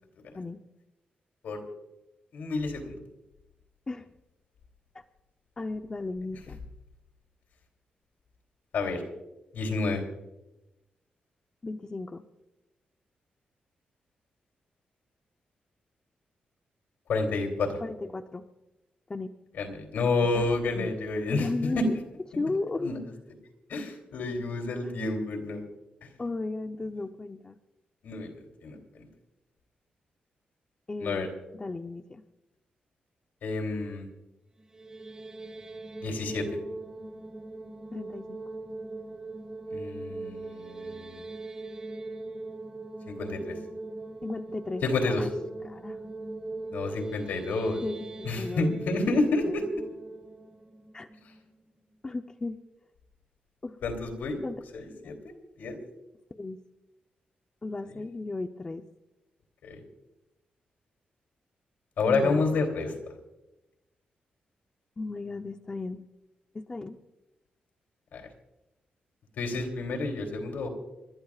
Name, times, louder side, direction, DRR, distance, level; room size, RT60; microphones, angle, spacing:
voice 1, 2.3-2.9 8.7-9.0 9.5-10.0 17.1-17.8 19.6-21.5 21.7-21.8 22.8-23.0 23.7-25.6 26.0-26.1 28.0-28.3 28.6-29.1 31.0-31.3 33.4-34.1 36.0-36.4 39.7-41.2 43.1-43.6 44.8-45.2 46.7-47.8 48.2-49.6 53.8-54.4 54.7-55.1 55.6-55.8 59.6-59.8 62.0-62.9 68.1-68.3 69.4-70.7, left 3 dB, 80° left, 3 dB, 3.1 m, -29 dB
voice 2, 5.6-6.6 11.6-12.2 17.8-18.5 19.1-19.3 20.3-20.5 20.8-20.9 21.3-22.0 22.4-22.9 26.2-27.6 30.9-32.2 37.9-38.4 44.2-45.3 45.6-46.1 47.8-49.0 50.9-51.1 52.0-52.6 53.6-53.8 54.4-54.6 54.8-55.2 56.3-56.6 57.6-58.8 62.1-62.6 65.0-66.0 66.5-67.0, left 3 dB, 25° left, 6 dB, 0.7 m, -35 dB
sound 1, 34.6-51.7, right 2 dB, 25° right, 1.6 m, -41 dB
29.5 x 13.0 x 2.4 m, 0.97 s
cardioid pair, 100°, 3 cm